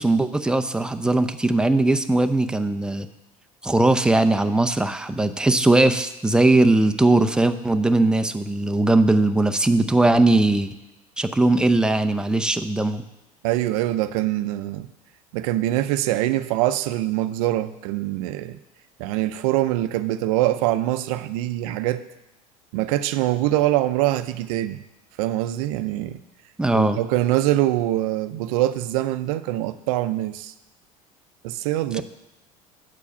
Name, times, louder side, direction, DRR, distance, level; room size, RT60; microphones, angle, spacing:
voice 1, 0.0-3.1 3.6-10.7 11.2-13.0 26.6-27.0 32.0-32.1, right 2 dB, 5° right, 8 dB, 0.5 m, -19 dB
voice 2, 13.4-14.9 15.3-18.6 19.0-22.0 22.7-24.8 25.2-26.2 26.7-30.5 31.4-32.0, right 14 dB, 75° right, 12 dB, 0.5 m, -24 dB
7.9 x 4.7 x 7.1 m, 0.94 s
hypercardioid pair, 85°, 18 cm